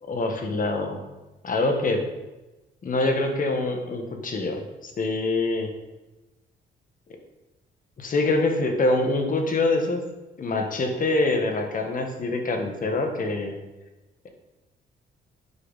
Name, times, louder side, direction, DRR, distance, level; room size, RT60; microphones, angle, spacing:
voice 1, 0.0-1.0 1.4-2.1 2.8-5.7 8.0-10.0 10.4-13.5, left 2 dB, 45° left, 4 dB, 1.6 m, -25 dB
9.6 x 6.0 x 4.1 m, 1.1 s
cardioid pair, 90°, 20 cm